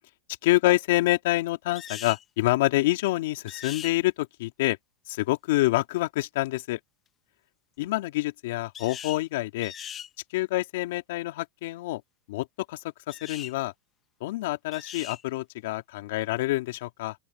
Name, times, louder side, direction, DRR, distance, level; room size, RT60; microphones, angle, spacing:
voice 1, 0.4-4.8 5.1-6.8 7.8-9.7 10.3-12.0 12.3-13.7 14.2-17.2, left 18 dB, 70° left, 2.7 m, -27 dB
sound 1, 1.7-2.2 3.5-4.0 8.7-9.2 9.6-10.1 13.1-13.5 14.7-15.2, left 9 dB, 30° left, 1.2 m, -39 dB
open air
hypercardioid pair, 115°, 0 cm